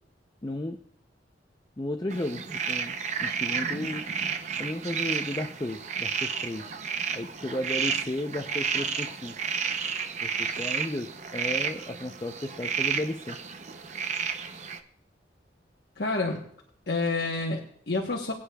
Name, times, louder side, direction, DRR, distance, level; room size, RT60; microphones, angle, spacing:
voice 1, 0.4-0.8 1.8-4.0 4.6-6.7 7.1-9.3 10.2-13.4, left 1 dB, 20° left, 4 dB, 0.5 m, -34 dB
sound 1, 2.1-14.8, right 6 dB, 40° right, 0.6 m, -31 dB
voice 2, 16.0-16.4 16.9-18.3, left 3 dB, 60° left, -1 dB, 1.1 m, -28 dB
22.0 x 8.6 x 2.3 m, 0.65 s
head